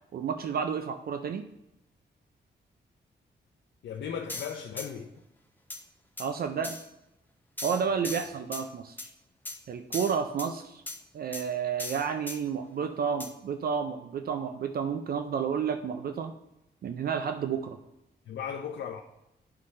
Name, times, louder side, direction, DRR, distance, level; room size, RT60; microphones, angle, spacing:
voice 1, 0.1-1.5 6.2-6.8 7.6-9.1 9.7-10.8 11.1-16.3 16.8-17.8, right 6 dB, 55° right, 0.4 m, -31 dB
voice 2, 3.8-5.1 18.3-19.0, left 7 dB, 85° left, 0.5 m, -36 dB
sound 1, 4.3-4.9 5.7-5.8 6.2-6.3 6.6-6.9 7.6-8.6 9.0-9.1 9.4-9.6 9.9-10.5 10.9-11.0 11.3-11.4 11.8-12.4 13.2-13.3, left 2 dB, 10° left, 0.6 m, -38 dB
9.8 x 5.6 x 3.2 m
wide cardioid pair, 160°, 18 cm